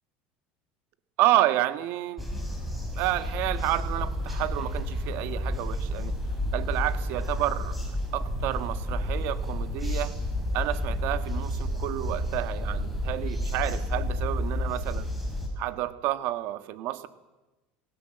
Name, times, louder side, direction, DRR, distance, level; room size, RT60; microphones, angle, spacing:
voice 1, 1.2-2.3 2.9-6.1 6.5-7.8 8.1-10.1 10.5-15.1 15.6-17.1, right 14 dB, 60° right, 11 dB, 1.7 m, -29 dB
sound 1, 2.2-15.5, left 1 dB, ahead, 7.0 m, -30 dB
28.0 x 18.5 x 7.9 m, 1.1 s
supercardioid pair, 135°, 4 cm